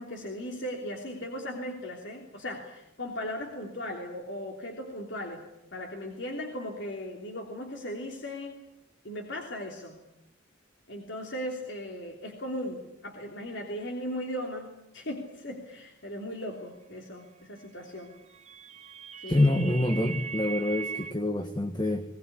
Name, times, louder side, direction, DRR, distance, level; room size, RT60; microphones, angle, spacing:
voice 1, 0.0-5.4 5.7-8.5 9.0-10.0 10.9-18.1 19.2-19.4, left 1 dB, 65° left, 1 dB, 3.2 m, -37 dB
sound 1, 18.0-21.1, right 6 dB, 35° right, 1.1 m, -39 dB
voice 2, 19.3-22.0, left 1 dB, 20° left, 6 dB, 1.5 m, -26 dB
21.5 x 19.5 x 9.9 m, 0.85 s
head